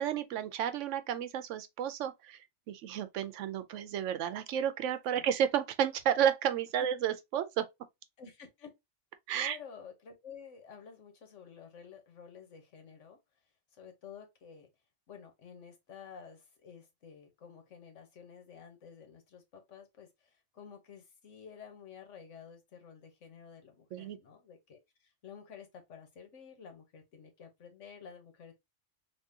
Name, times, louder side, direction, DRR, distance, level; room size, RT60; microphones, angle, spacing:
voice 1, 0.0-2.4 2.7-7.7 9.3-9.6 23.9-24.2, right 9 dB, 85° right, 0.9 m, -32 dB
voice 2, 8.2-8.7 9.3-13.2 13.7-14.7 15.1-28.5, left 7 dB, 85° left, 1.3 m, -51 dB
3.6 x 2.9 x 2.7 m
omnidirectional pair, 1.2 m